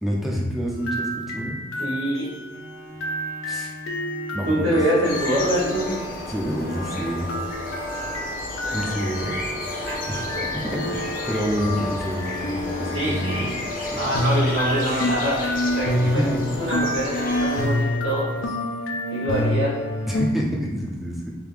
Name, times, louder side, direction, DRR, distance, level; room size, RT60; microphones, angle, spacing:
voice 1, 0.0-1.7 3.5-3.7 4.3-4.8 6.3-7.3 8.7-9.4 10.1-10.3 10.5-14.2 16.0-16.5 20.1-21.3, equal, ahead, -2 dB, 0.5 m, -28 dB
sound 1, 0.7-6.0 7.3-13.1 14.1-20.3, left 1 dB, 85° left, 0.5 m, -28 dB
voice 2, 1.8-2.3 4.4-6.0 8.8-8.9 9.9-10.0 12.9-13.5 13.9-15.4 15.8-16.2 16.6-18.5 19.1-19.8, right 1 dB, 75° right, -7 dB, 1.5 m, -25 dB
Bowed string instrument, 2.5-8.1 8.8-8.9, equal, 50° right, 0.8 m, -43 dB
sound 2, 5.0-17.6, left 1 dB, 45° left, 0.7 m, -31 dB
3.4 x 2.7 x 3.4 m, 1.3 s
head